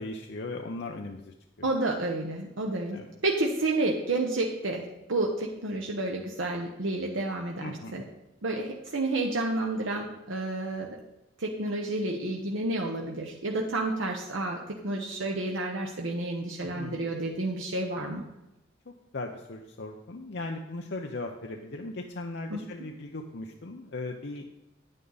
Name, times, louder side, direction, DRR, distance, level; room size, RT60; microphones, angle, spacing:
voice 1, 0.0-1.7 2.9-3.1 7.6-8.1 16.6-17.0 18.9-24.5, left 2 dB, 60° left, 3 dB, 0.7 m, -38 dB
voice 2, 1.6-8.0 8.4-11.0 11.4-18.2 22.5-22.6, right 2 dB, 80° right, 1 dB, 1.0 m, -30 dB
9.6 x 9.0 x 4.0 m, 0.93 s
head